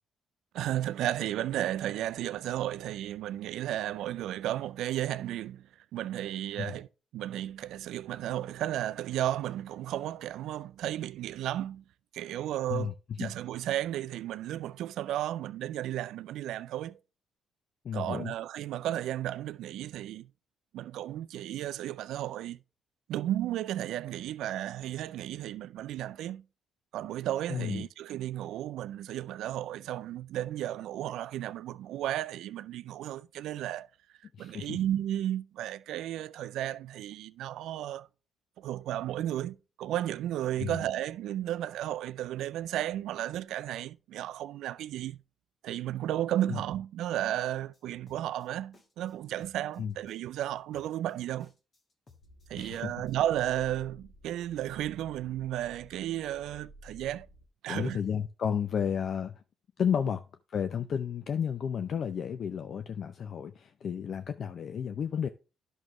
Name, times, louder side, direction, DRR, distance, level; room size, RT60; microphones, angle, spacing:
voice 1, 0.5-6.9 7.1-11.8 12.1-12.9 13.2-17.0 17.9-20.3 20.7-22.6 23.1-26.4 26.9-33.9 34.4-38.1 38.6-45.2 45.6-51.5 52.5-57.3 57.6-58.0, right 12 dB, 85° right, 0.4 m, -34 dB
voice 2, 17.8-18.3 27.5-27.9 34.4-34.8 40.6-40.8 46.5-46.6 49.8-49.9 52.6-52.9 57.7-59.4 59.8-60.2 60.5-65.3, left 7 dB, 60° left, 0.5 m, -32 dB
sound 1, 47.5-53.3, left 4 dB, 40° left, 1.5 m, -61 dB
sound 2, 52.2-57.5, right 1 dB, 85° left, 2.4 m, -54 dB
11.0 x 6.3 x 3.1 m
cardioid pair, 90°, 0 cm